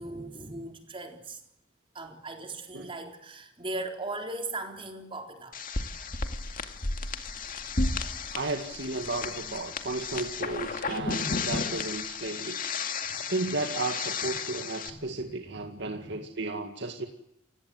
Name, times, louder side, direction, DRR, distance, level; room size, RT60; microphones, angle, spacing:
voice 1, 0.0-1.4 1.9-5.5 13.1-13.2 14.8-16.2, right 2 dB, 25° right, 3 dB, 4.0 m, -39 dB
sound 1, 5.5-14.9, left 4 dB, 45° left, 2.2 m, -33 dB
voice 2, 8.3-12.6 13.3-17.1, right 2 dB, 65° right, 4 dB, 2.2 m, -34 dB
30.0 x 17.5 x 7.9 m, 0.83 s
head